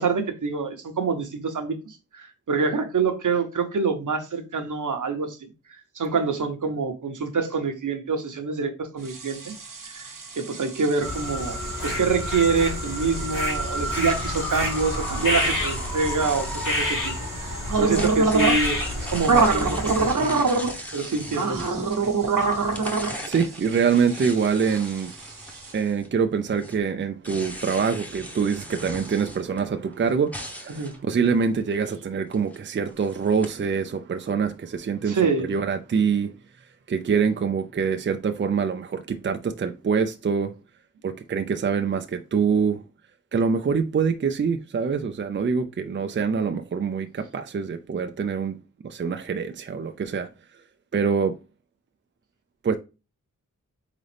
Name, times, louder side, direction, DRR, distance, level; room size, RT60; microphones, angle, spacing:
voice 1, 0.0-5.4 5.9-9.5 9.8-11.6 11.8-17.0 17.8-20.4 20.9-22.1 30.7-30.9 35.1-35.6, right 4 dB, 70° right, 0.9 m, -26 dB
sound 1, 9.1-25.7, right 4 dB, 85° right, 1.1 m, -27 dB
sound 2, 11.0-20.1, left 1 dB, 75° left, 2.0 m, -28 dB
sound 3, 13.9-17.3 17.8-22.2 22.5-26.2 26.5-31.0 31.4-31.7 32.3-32.6 32.9-33.5, equal, 5° left, 1.0 m, -39 dB
voice 2, 23.3-25.1 25.7-36.3 36.9-40.5 41.0-42.8 43.3-48.6 48.8-50.3 50.9-51.3 52.6-52.8, right 6 dB, 35° right, 0.4 m, -25 dB
4.0 x 3.9 x 3.3 m
wide cardioid pair, 70°, 32 cm